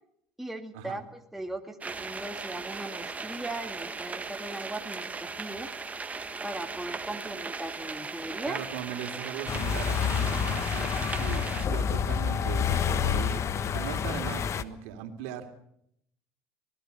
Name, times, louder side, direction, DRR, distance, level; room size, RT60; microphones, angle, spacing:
voice 1, 0.4-5.7 6.4-8.6, right 1 dB, 5° right, 3 dB, 2.3 m, -38 dB
sound 1, 1.8-11.7, right 4 dB, 20° right, 1.7 m, -38 dB
voice 2, 8.4-15.5, right 9 dB, 80° right, 6 dB, 3.0 m, -39 dB
sound 2, 9.5-14.6, left 7 dB, 40° left, 1.3 m, -28 dB
25.5 x 18.0 x 6.9 m, 0.73 s
supercardioid pair, 85°, 7 cm